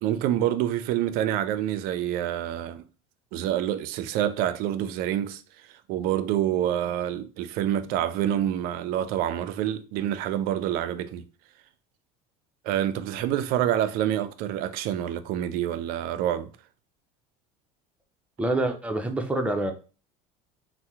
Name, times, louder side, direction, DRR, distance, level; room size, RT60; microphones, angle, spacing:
voice 1, 0.0-2.8 3.3-5.4 5.9-11.2 12.6-16.5, right 11 dB, 60° right, 0.4 m, -27 dB
voice 2, 18.4-19.7, right 2 dB, 10° right, 0.5 m, -26 dB
2.7 x 2.0 x 3.4 m
supercardioid pair, 100°, 17 cm